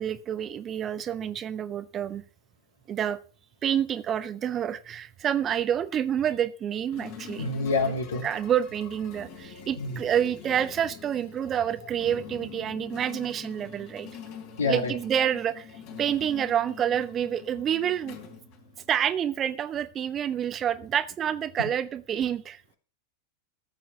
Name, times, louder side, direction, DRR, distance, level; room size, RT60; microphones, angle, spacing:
voice 1, 0.0-2.2 2.9-3.2 3.6-7.5 8.2-14.1 14.6-15.7 16.0-18.2 18.9-22.6, right 9 dB, 25° right, 0.9 m, -28 dB
sound 1, 6.9-19.2, left 7 dB, 45° left, 3.4 m, -45 dB
voice 2, 7.4-8.2 9.8-10.0 14.6-14.9, left 3 dB, 70° left, 2.7 m, -27 dB
14.5 x 7.7 x 5.5 m
figure-of-eight pair, 90°, 0 cm